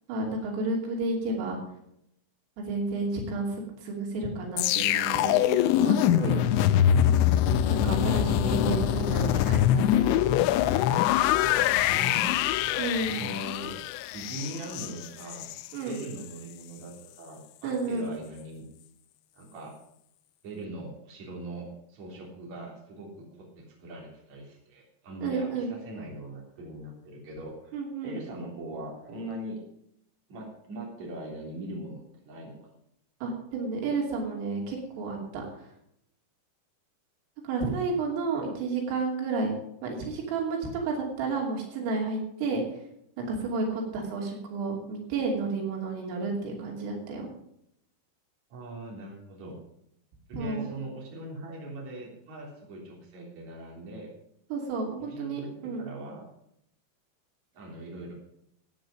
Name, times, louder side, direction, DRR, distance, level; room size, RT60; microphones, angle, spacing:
voice 1, 0.1-1.6 2.6-3.5 3.8-6.4 7.7-10.2 12.8-13.2 15.7-16.0 17.6-18.1 25.2-25.7 27.7-28.2 33.2-35.4 37.4-39.5 39.8-40.6 40.8-42.6 43.2-47.3 50.3-50.7 54.5-55.9, right 3 dB, 85° right, 0 dB, 5.4 m, -31 dB
sound 1, 4.6-15.7 16.0-16.2, left 11 dB, 85° left, 2.7 m, -24 dB
voice 2, 11.6-12.6 13.1-13.7 14.1-15.4 15.9-18.7 19.3-19.7 20.4-27.8 28.0-29.6 30.3-32.7 48.5-49.6 50.3-54.1 55.0-56.3 57.5-58.1, right 1 dB, 40° right, -2 dB, 4.3 m, -41 dB
15.0 x 8.8 x 5.2 m, 0.74 s
omnidirectional pair, 5.6 m